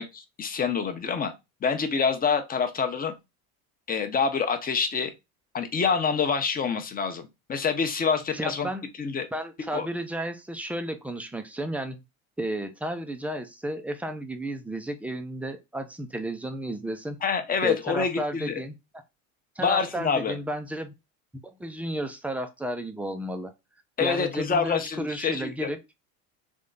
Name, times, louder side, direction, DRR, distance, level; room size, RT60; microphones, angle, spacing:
voice 1, 0.0-1.3 1.6-3.1 3.9-5.1 5.5-8.7 9.0-9.3 9.7-9.9 17.2-18.6 19.6-20.4 24.0-25.7, left 6 dB, 20° left, 0.8 m, -26 dB
voice 2, 8.3-8.9 9.3-12.0 12.4-17.2 17.6-18.8 19.6-20.9 21.4-23.5 24.0-25.8, right 1 dB, 5° right, 0.5 m, -33 dB
3.6 x 3.2 x 3.9 m
supercardioid pair, 115°, 44 cm